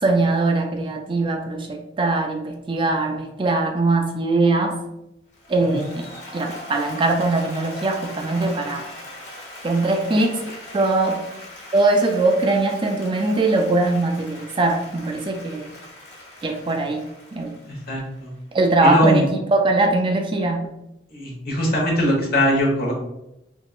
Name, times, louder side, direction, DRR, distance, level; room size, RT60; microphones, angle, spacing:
voice 1, 0.0-4.8 5.5-6.1 6.3-8.8 9.6-10.4 10.7-11.2 11.7-15.7 16.4-17.0 17.3-17.6 18.5-20.6, right 2 dB, 30° right, 3 dB, 0.3 m, -21 dB
Applause, 5.3-18.5, left 1 dB, 75° left, 1.4 m, -40 dB
voice 2, 17.6-18.3 18.8-19.2 21.1-22.9, equal, 55° left, -2 dB, 1.2 m, -21 dB
3.6 x 2.9 x 2.4 m, 0.86 s
head